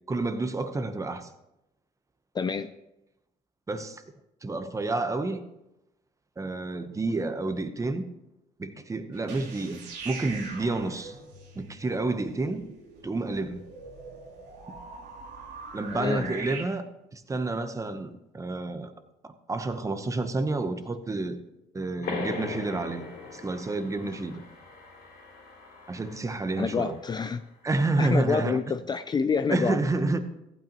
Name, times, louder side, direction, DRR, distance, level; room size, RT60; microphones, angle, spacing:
voice 1, 0.1-1.3 3.7-4.0 4.4-5.4 6.4-8.1 8.6-11.2 11.5-12.7 13.0-13.6 14.7-14.8 15.7-16.9 17.1-18.9 19.2-21.4 21.7-23.1 23.3-24.3 25.9-27.0 27.6-28.6 29.5-30.2, right 2 dB, 20° right, 0.8 m, -29 dB
voice 2, 2.3-2.7 15.9-16.3 26.6-27.4 28.0-29.8, left 5 dB, 25° left, 0.4 m, -27 dB
sound 1, 9.1-16.6, right 4 dB, 85° right, 2.7 m, -43 dB
sound 2, 22.0-27.3, left 4 dB, 75° left, 2.8 m, -39 dB
15.0 x 8.8 x 3.0 m
cardioid pair, 110°, 17 cm